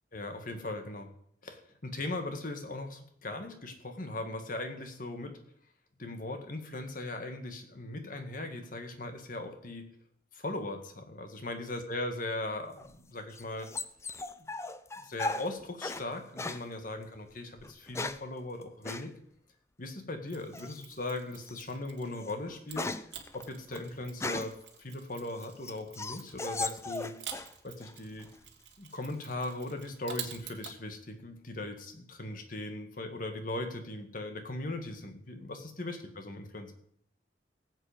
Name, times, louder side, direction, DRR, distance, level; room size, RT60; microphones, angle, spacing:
voice 1, 0.1-1.1 1.4-5.3 6.0-9.9 10.3-13.7 14.4-14.5 15.0-19.1 19.8-22.9 23.3-24.5 24.8-27.1 27.6-28.3 28.8-36.7, left 2 dB, 50° left, 6 dB, 2.0 m, -39 dB
sound 1, 12.8-16.1 16.4-16.7 17.6-18.3 18.8-19.1 20.5-20.9 21.5-21.6 22.0-24.7 25.2-27.5 27.8-28.4, left 2 dB, 15° left, 0.5 m, -38 dB
Mechanisms, 20.3-22.2 22.7-30.8, right 9 dB, 80° right, 1.9 m, -48 dB
18.5 x 8.1 x 5.2 m, 0.67 s
head